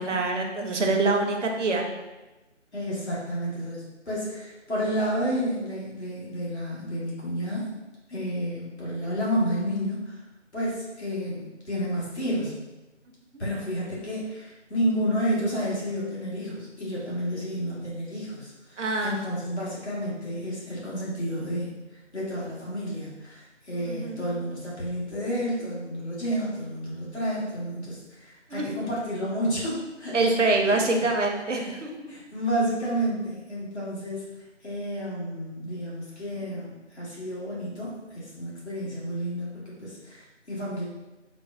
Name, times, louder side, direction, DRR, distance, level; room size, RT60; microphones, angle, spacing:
voice 1, 0.0-1.9 18.8-19.2 23.8-24.2 28.5-28.7 30.1-32.1, right 3 dB, 75° right, 2 dB, 0.6 m, -25 dB
voice 2, 0.7-1.1 2.7-7.7 8.1-10.2 10.5-12.5 13.4-30.2 30.4-31.1 31.5-31.7 32.1-34.3 34.6-40.8, equal, 65° left, -6 dB, 1.2 m, -31 dB
4.1 x 2.0 x 2.4 m, 1.1 s
figure-of-eight pair, 175°, 37 cm